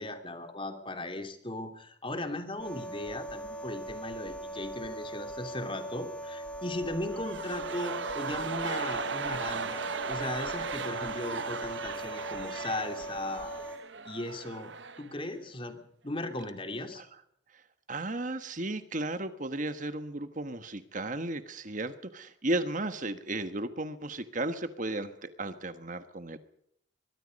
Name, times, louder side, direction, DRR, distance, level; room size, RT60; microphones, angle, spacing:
voice 1, 0.0-13.5 14.0-17.0, left 1 dB, 25° left, 6 dB, 2.9 m, -37 dB
sound 1, 2.6-13.8, right 1 dB, 5° left, 2.5 m, -40 dB
sound 2, 7.1-15.2 15.4-15.5, right 5 dB, 70° right, 1.0 m, -37 dB
voice 2, 17.9-26.4, right 2 dB, 40° right, 11 dB, 1.3 m, -34 dB
23.5 x 22.0 x 5.3 m, 0.69 s
head